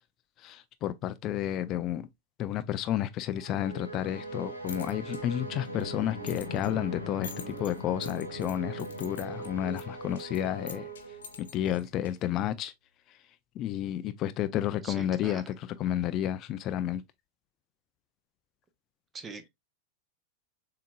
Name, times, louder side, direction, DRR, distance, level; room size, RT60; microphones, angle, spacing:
voice 1, 0.4-2.1 2.4-10.9 11.4-12.7 13.1-13.2 13.6-17.0, left 11 dB, 35° left, 0.3 m, -31 dB
sound 1, 3.3-11.8, right 2 dB, 85° right, 1.4 m, -40 dB
sound 2, 4.4-12.4, left 5 dB, 65° left, 0.9 m, -50 dB
voice 2, 14.8-15.4 19.1-19.5, right 4 dB, 20° right, 0.8 m, -42 dB
7.0 x 2.8 x 2.2 m
figure-of-eight pair, 90°, 0 cm